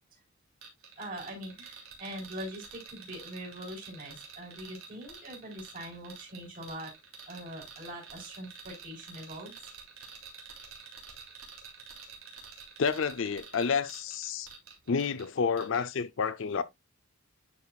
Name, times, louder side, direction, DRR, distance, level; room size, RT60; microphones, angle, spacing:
sound 1, 0.6-15.3 15.6-15.8, right 6 dB, 70° right, 3.0 m, -48 dB
voice 1, 1.0-6.9 7.3-9.5, right 1 dB, 40° right, 3.9 m, -42 dB
voice 2, 12.8-14.5 14.9-16.6, left 5 dB, 55° left, 0.5 m, -29 dB
10.5 x 4.9 x 2.3 m
head